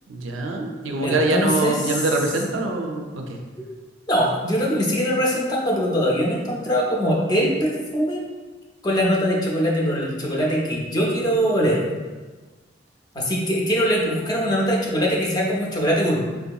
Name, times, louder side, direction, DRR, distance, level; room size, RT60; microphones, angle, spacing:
voice 1, 0.1-3.4, right 2 dB, 90° right, 2 dB, 0.4 m, -24 dB
voice 2, 1.0-2.0 3.6-3.7 4.1-8.2 8.8-11.8 13.1-16.3, equal, 20° left, -2 dB, 0.4 m, -22 dB
3.6 x 2.7 x 2.3 m, 1.3 s
head